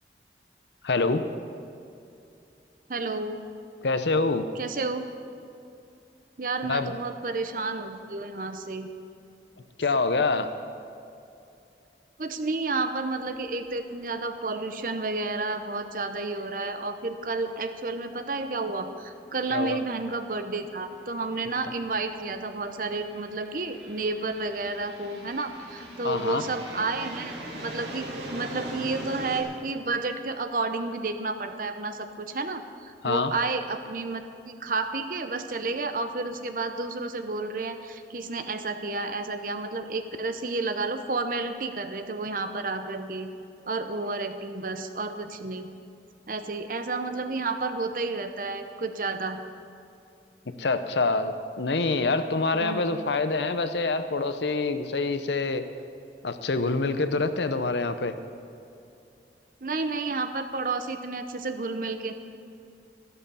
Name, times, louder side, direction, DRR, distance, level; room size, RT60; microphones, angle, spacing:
voice 1, 0.8-1.2 3.8-4.5 6.7-6.9 9.8-10.5 19.5-19.8 26.0-26.4 33.0-33.3 50.6-55.7 56.2-58.2, left 3 dB, 80° left, 10 dB, 0.7 m, -26 dB
voice 2, 2.9-3.4 4.6-5.1 6.4-8.9 12.2-43.3 43.7-45.7 46.3-49.4 52.5-52.8 59.6-62.1, right 3 dB, 50° right, 8 dB, 0.8 m, -31 dB
sound 1, 13.7-13.8 17.8-17.9 19.0-19.2 19.8-29.4, right 1 dB, 85° right, 2.5 m, -41 dB
12.5 x 12.5 x 5.5 m, 2.6 s
head